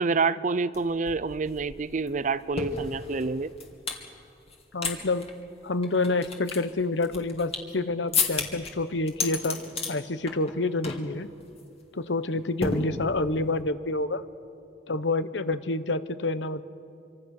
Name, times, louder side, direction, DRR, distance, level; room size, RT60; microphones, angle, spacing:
voice 1, 0.0-3.5, right 4 dB, 45° right, 16 dB, 0.5 m, -27 dB
sound 1, 0.7-4.0 4.5-4.9 5.2-5.3 5.8-7.7 8.1-8.7 9.1-9.9 10.3-10.6 10.8-11.1 11.4-11.6 12.6-13.4, left 4 dB, 35° left, 2.4 m, -31 dB
voice 2, 4.7-5.3 5.6-9.6 9.9-11.3 11.9-14.2 14.9-16.6, left 2 dB, 85° left, 13 dB, 0.9 m, -28 dB
26.0 x 25.5 x 6.5 m, 2.6 s
head